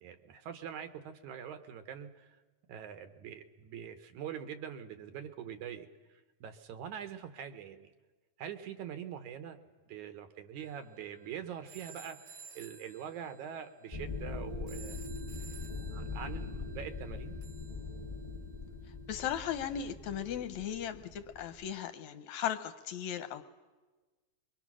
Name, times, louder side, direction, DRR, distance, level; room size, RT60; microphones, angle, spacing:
voice 1, 0.0-2.3 2.7-7.9 8.4-9.6 9.9-15.0 15.9-17.4, right 8 dB, 75° right, 9 dB, 2.4 m, -44 dB
sound 1, 10.6-18.6, right 6 dB, 55° right, 1.3 m, -55 dB
sound 2, 13.9-21.7, left 3 dB, 25° left, 0.7 m, -42 dB
voice 2, 19.1-23.4, left 9 dB, 70° left, 9 dB, 2.0 m, -37 dB
25.0 x 22.5 x 6.2 m, 1.3 s
omnidirectional pair, 3.6 m